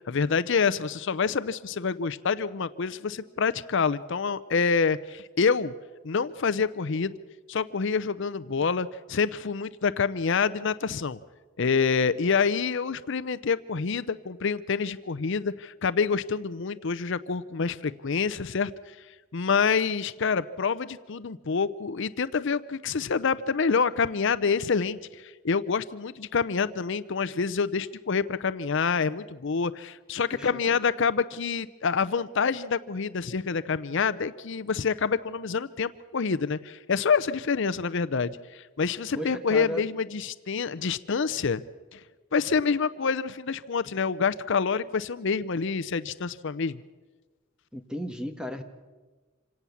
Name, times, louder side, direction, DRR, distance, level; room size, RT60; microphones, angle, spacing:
voice 1, 0.1-5.7 6.0-7.2 7.5-11.2 11.6-19.0 19.3-41.6 41.9-42.0 42.3-46.8, left 5 dB, 65° left, 14 dB, 0.6 m, -27 dB
voice 2, 39.1-39.8 47.7-48.6, equal, 5° right, 7 dB, 1.5 m, -34 dB
26.5 x 17.5 x 7.2 m, 1.3 s
head